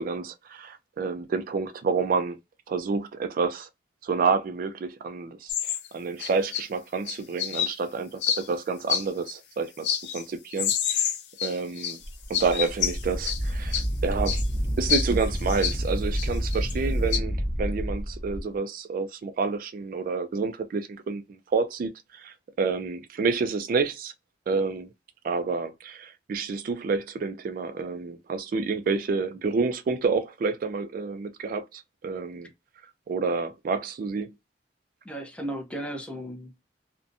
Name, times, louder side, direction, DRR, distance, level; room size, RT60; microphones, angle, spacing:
voice 1, 0.0-2.4 2.7-3.7 4.0-9.9 10.1-11.1 11.4-12.0 12.3-14.4 14.8-24.1 24.5-24.9 25.2-32.5 33.1-34.3, right 4 dB, 55° right, 0.3 m, -29 dB
sound 1, 5.5-5.9 6.2-6.6 7.1-7.7 8.2-8.5 8.9-9.3 9.8-10.2 10.5-12.0 12.3-13.4 13.7-13.9 14.3-14.5 14.9-15.8 16.2-16.7 17.1-17.2, left 9 dB, 75° left, 0.6 m, -28 dB
Wind, 12.0-18.4, equal, 25° left, 0.9 m, -29 dB
voice 2, 35.0-36.6, right 1 dB, 5° left, 0.6 m, -35 dB
2.6 x 2.1 x 2.5 m
head